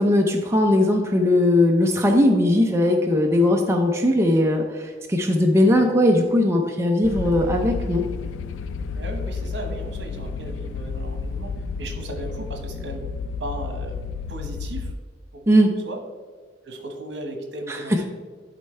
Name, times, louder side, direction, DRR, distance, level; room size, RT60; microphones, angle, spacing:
voice 1, 0.0-8.0 15.5-15.7 17.7-17.8, left 1 dB, 15° right, 1 dB, 0.5 m, -19 dB
sound 1, 7.0-14.9, left 4 dB, 85° left, 0.3 m, -31 dB
voice 2, 8.9-11.5 11.8-13.0 13.4-14.0 14.3-14.9 15.3-15.5 15.8-16.0 16.6-18.0, right 1 dB, 65° right, 4 dB, 1.2 m, -36 dB
11.5 x 4.3 x 3.2 m, 1.5 s
head